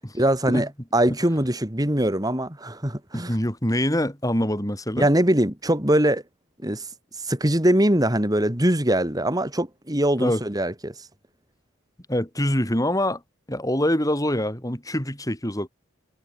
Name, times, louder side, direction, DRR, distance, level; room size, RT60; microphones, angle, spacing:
voice 1, 0.1-3.3 5.0-6.2 6.6-6.8 7.2-10.9, right 1 dB, 20° right, 3.8 m, -22 dB
voice 2, 3.1-5.1 10.2-10.4 12.1-13.2 13.5-15.7, left 1 dB, 15° left, 7.2 m, -24 dB
head